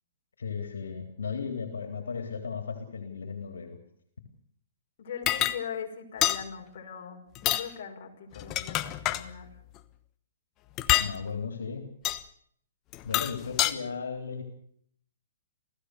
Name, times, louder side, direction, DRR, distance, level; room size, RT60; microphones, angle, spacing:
voice 1, 0.4-3.8 11.0-11.9 13.0-14.4, left 5 dB, 90° left, 5 dB, 3.6 m, -35 dB
voice 2, 5.0-9.5, left 7 dB, 55° left, 1 dB, 5.8 m, -40 dB
sound 1, 5.3-5.6 6.2-6.4 7.3-7.7 8.3-9.2 10.8-11.1 12.0-12.2 12.9-13.7, left 14 dB, 30° left, 1.1 m, -26 dB
27.5 x 16.5 x 6.7 m, 0.65 s
hypercardioid pair, 145°, 0 cm